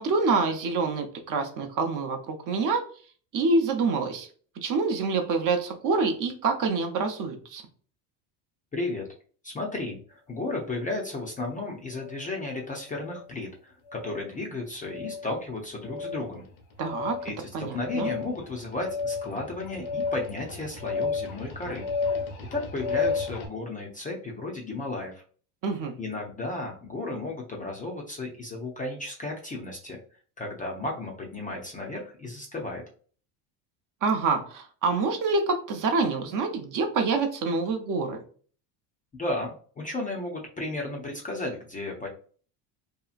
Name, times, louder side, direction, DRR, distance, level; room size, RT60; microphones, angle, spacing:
voice 1, 0.0-2.8 3.3-4.3 4.6-7.6 16.8-17.2 17.5-18.1 25.6-25.9 34.0-38.2, right 4 dB, 45° right, 5 dB, 0.6 m, -26 dB
voice 2, 8.7-9.1 9.4-16.4 17.2-21.9 22.5-25.2 26.0-30.0 30.4-32.8 39.2-42.1, left 2 dB, 20° left, 0 dB, 0.4 m, -34 dB
sound 1, 12.0-12.2 12.9-13.3 13.9-14.3 14.9-15.3 15.8-16.3 16.8-23.5, left 4 dB, 85° left, 0.9 m, -32 dB
2.8 x 2.4 x 2.4 m, 0.43 s
supercardioid pair, 100°, 47 cm